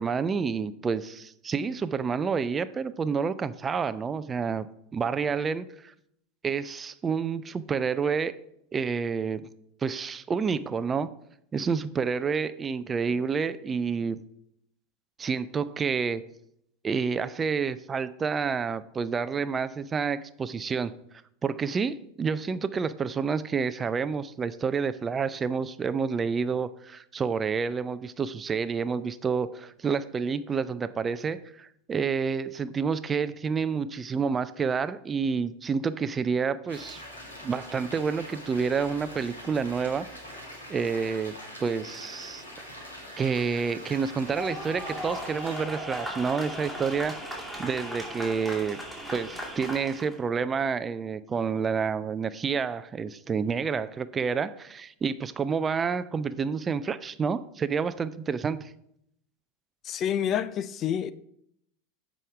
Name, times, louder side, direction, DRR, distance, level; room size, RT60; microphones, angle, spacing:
voice 1, 0.0-4.7 4.9-5.9 6.4-8.3 8.7-9.5 9.8-11.1 11.5-14.2 15.2-16.2 16.8-20.9 21.4-37.0 37.4-40.4 40.7-41.4 41.6-42.4 43.2-48.8 49.1-58.7, right 5 dB, 25° right, 0.4 m, -29 dB
sound 1, 36.7-45.6, equal, 85° left, 2.0 m, -43 dB
sound 2, 44.2-50.1, equal, ahead, 2.6 m, -37 dB
voice 2, 59.8-61.1, left 9 dB, 35° left, 0.4 m, -28 dB
7.6 x 5.0 x 4.7 m
figure-of-eight pair, 85°, 0 cm